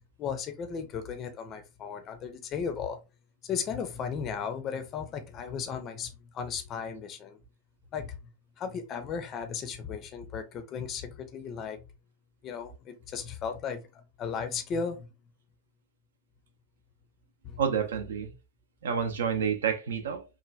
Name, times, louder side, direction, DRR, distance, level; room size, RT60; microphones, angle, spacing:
voice 1, 0.2-3.0 3.4-7.4 7.9-8.3 8.6-11.9 12.4-13.9 14.2-15.1 17.4-17.6, left 6 dB, 30° left, 0.5 m, -35 dB
voice 2, 17.6-18.3 18.8-20.2, right 7 dB, 65° right, 0.6 m, -29 dB
3.1 x 2.2 x 2.4 m
figure-of-eight pair, 90°, 0 cm